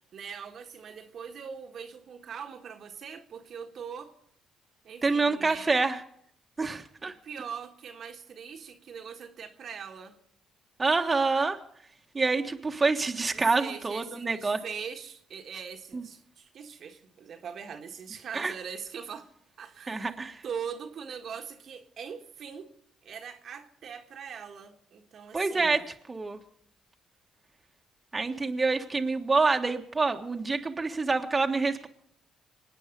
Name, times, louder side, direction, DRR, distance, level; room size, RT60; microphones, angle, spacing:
voice 1, 0.1-4.1 4.8-5.7 7.0-10.2 13.3-19.3 19.6-20.2 20.4-22.7 23.0-25.8, right 7 dB, 60° right, 1.5 m, -41 dB
voice 2, 5.0-6.0 6.6-7.1 10.8-11.6 12.1-14.6 15.9-16.0 18.3-18.5 19.9-20.4 25.3-25.8 26.1-26.4 28.1-31.9, right 3 dB, 30° right, 1.4 m, -27 dB
26.0 x 9.2 x 5.3 m
hypercardioid pair, 50°, 0 cm